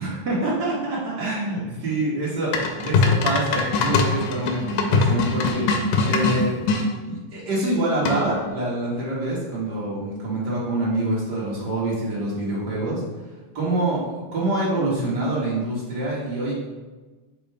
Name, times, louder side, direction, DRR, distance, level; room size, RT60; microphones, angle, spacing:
voice 1, 0.0-13.0 13.5-16.5, right 1 dB, 75° right, -6 dB, 0.9 m, -26 dB
sound 1, 2.5-6.8 8.0-8.5, left 3 dB, 90° left, 2.4 m, -22 dB
5.2 x 5.1 x 4.6 m, 1.3 s
omnidirectional pair, 3.9 m